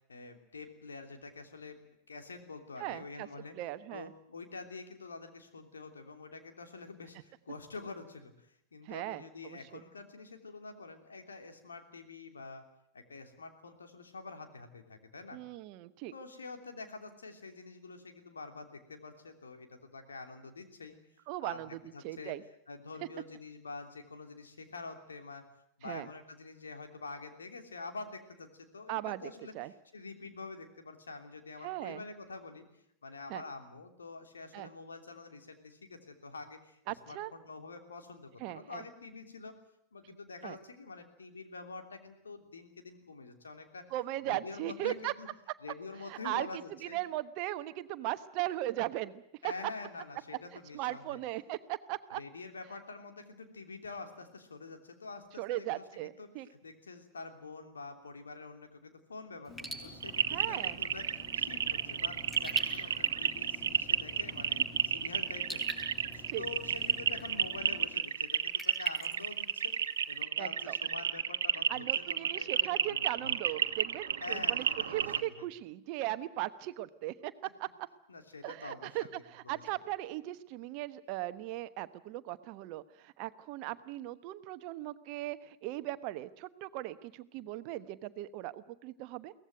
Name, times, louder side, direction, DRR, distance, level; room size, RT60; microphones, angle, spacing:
voice 1, 0.1-1.8 2.1-3.5 3.9-12.6 12.9-15.4 16.1-20.9 21.4-22.3 22.7-25.4 25.8-36.8 37.0-39.5 39.9-43.8 44.3-45.3 45.6-47.0 49.4-51.2 52.1-65.8 66.1-73.3 74.2-75.5 78.1-79.1 79.4-79.6, left 4 dB, 75° left, 6 dB, 3.1 m, -47 dB
voice 2, 2.8-3.3 3.5-4.1 8.8-9.8 15.3-16.1 21.3-21.8 22.0-22.4 25.8-26.1 28.9-29.2 29.5-29.7 31.6-32.0 33.3-33.4 34.5-34.7 36.9-37.3 38.4-38.8 40.4-40.6 43.9-45.1 46.1-46.5 46.8-49.2 50.7-52.2 55.4-56.5 60.3-60.8 66.3-66.4 70.4-70.8 71.7-77.3 77.6-77.7 78.4-89.3, right 16 dB, 45° right, 13 dB, 1.1 m, -38 dB
Raindrop / Drip, 59.4-70.2, right 2 dB, 10° left, 6.0 m, -48 dB
sound 1, 59.5-67.9, left 2 dB, 30° left, 6.5 m, -51 dB
sound 2, 60.0-75.2, right 8 dB, 65° right, 1.2 m, -31 dB
23.0 x 18.0 x 9.3 m, 0.74 s
figure-of-eight pair, 90°, 0 cm